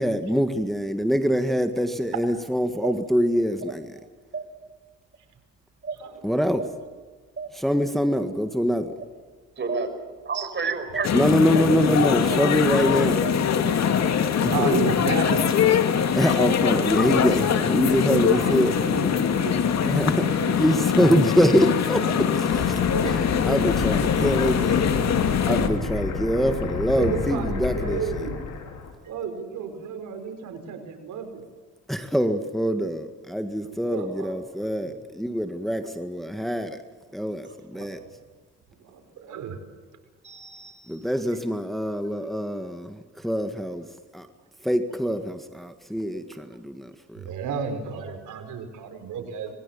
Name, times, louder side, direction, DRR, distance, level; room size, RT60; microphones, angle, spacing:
voice 1, 0.0-3.9 6.2-6.6 7.5-8.9 11.1-13.3 14.4-14.7 16.2-18.7 19.8-20.3 20.6-22.5 23.0-24.9 25.4-28.3 31.9-36.8 37.1-38.0 40.9-43.9 44.1-44.3 44.6-47.2, equal, ahead, 7 dB, 1.9 m, -24 dB
voice 2, 9.6-9.9 10.3-11.1 11.6-11.9 12.3-12.4 12.8-12.9 13.2-13.3 13.6-14.1 14.4-14.5 37.5-37.6 40.2-41.0, right 5 dB, 40° right, 7 dB, 5.6 m, -31 dB
sound 1, 11.0-25.7, left 8 dB, 60° left, 2.5 m, -22 dB
voice 3, 14.3-15.5 18.1-20.6 22.5-23.4 23.9-24.3 25.3-25.4 26.9-28.4 29.0-31.5 33.6-34.4 34.8-35.0 37.7-37.9 38.7-39.6 46.1-46.2 47.2-49.5, right 6 dB, 80° right, 7 dB, 4.7 m, -33 dB
sound 2, 22.5-28.9, left 5 dB, 80° left, 5.2 m, -31 dB
26.5 x 21.5 x 7.2 m, 1.4 s
cardioid pair, 90°, 30 cm